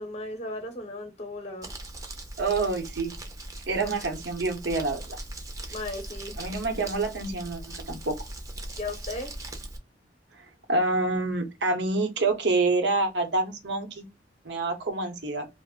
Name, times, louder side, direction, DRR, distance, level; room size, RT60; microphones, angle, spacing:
voice 1, 0.0-1.7 5.7-6.4 8.7-9.3, left 2 dB, 35° left, 0.7 m, -36 dB
Crumpling crinkling, 1.6-9.8, right 1 dB, 20° right, 0.6 m, -40 dB
voice 2, 2.4-3.1 3.7-5.2 6.4-7.6 7.9-8.2 10.7-14.0 14.4-15.5, right 3 dB, 75° right, 0.8 m, -27 dB
2.4 x 2.0 x 3.5 m
head